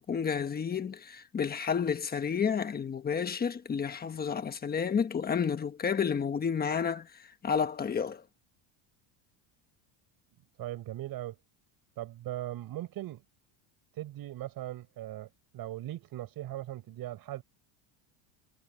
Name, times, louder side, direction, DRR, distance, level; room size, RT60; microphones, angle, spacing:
voice 1, 0.1-7.1 7.4-8.2, left 6 dB, 20° left, 1.2 m, -30 dB
voice 2, 10.6-11.4 12.0-13.2 13.9-17.4, right 14 dB, 45° right, 6.2 m, -39 dB
cardioid pair, 160°, 49 cm